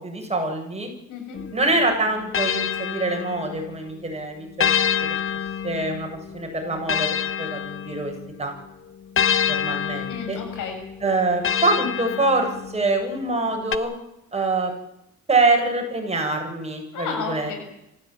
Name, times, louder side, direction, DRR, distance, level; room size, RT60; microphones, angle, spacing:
voice 1, 0.0-0.9 1.5-4.7 5.6-6.1 6.3-8.1 8.4-8.5 9.5-10.4 11.0-13.9 14.3-14.7 15.3-17.5, right 2 dB, 20° right, 2 dB, 8.0 m, -24 dB
voice 2, 1.1-1.4 10.1-10.8 16.9-17.6, left 5 dB, 85° left, 5 dB, 7.6 m, -32 dB
sound 1, 1.3-3.8 4.6-8.4 9.2-12.9 13.7-13.8, left 8 dB, 45° left, 1.4 m, -27 dB
26.0 x 15.5 x 9.4 m, 0.85 s
cardioid pair, 90°, 30 cm